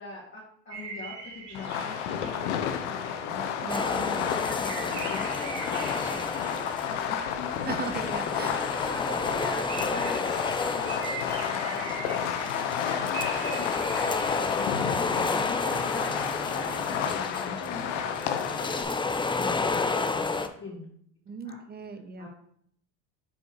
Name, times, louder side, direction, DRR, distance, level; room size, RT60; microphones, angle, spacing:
voice 1, 0.0-7.7 8.1-11.0 11.4-20.9 21.4-21.6 22.2-22.3, left 2 dB, 35° left, -6 dB, 2.6 m, -42 dB
sound 1, 0.7-3.5 3.8-3.9 4.3-8.3 8.7-8.8 9.0-9.1 9.4-15.0, right 4 dB, 80° right, 2.0 m, -41 dB
Fireworks, 1.5-18.8, left 8 dB, 85° left, 0.8 m, -31 dB
voice 2, 3.6-4.3 7.6-8.5 21.3-22.3, right 4 dB, 30° right, 9 dB, 0.9 m, -37 dB
sound 2, 3.7-7.0 7.3-20.5, left 4 dB, 15° left, 0.6 m, -31 dB
5.5 x 4.4 x 6.2 m, 0.66 s
supercardioid pair, 90°, 34 cm